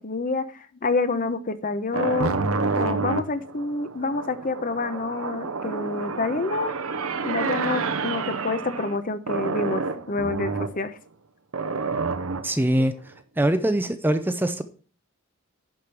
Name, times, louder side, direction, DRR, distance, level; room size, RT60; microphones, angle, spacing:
voice 1, 0.0-2.4 2.8-6.7 7.2-11.0 12.8-12.9, left 3 dB, 40° left, 0.8 m, -28 dB
sound 1, 1.9-9.0 9.3-10.8 11.5-12.7, right 4 dB, 75° right, 0.9 m, -28 dB
voice 2, 12.4-14.6, right 1 dB, 10° right, 0.6 m, -23 dB
11.0 x 5.2 x 6.0 m
head